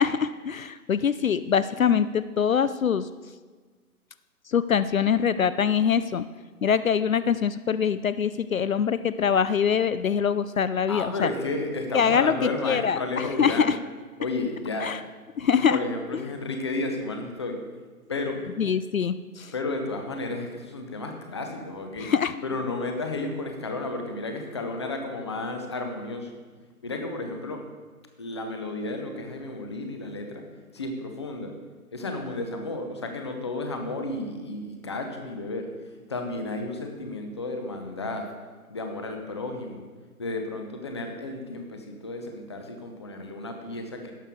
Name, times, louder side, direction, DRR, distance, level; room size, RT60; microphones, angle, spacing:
voice 1, 0.0-3.1 4.5-6.2 6.6-11.3 11.9-12.4 12.6-13.8 14.8-15.0 15.4-15.8 18.6-19.5 22.0-22.3, left 7 dB, 65° left, 14 dB, 0.5 m, -24 dB
voice 2, 10.9-13.7 14.2-15.0 15.4-17.6 18.1-18.4 19.5-22.1 22.4-26.3 26.8-27.6 28.2-30.4 30.7-31.5 31.9-35.7 36.1-38.3 38.7-39.8 40.2-44.1, left 2 dB, 20° left, 4 dB, 0.7 m, -32 dB
17.5 x 6.7 x 3.6 m, 1.4 s
figure-of-eight pair, 145°, 44 cm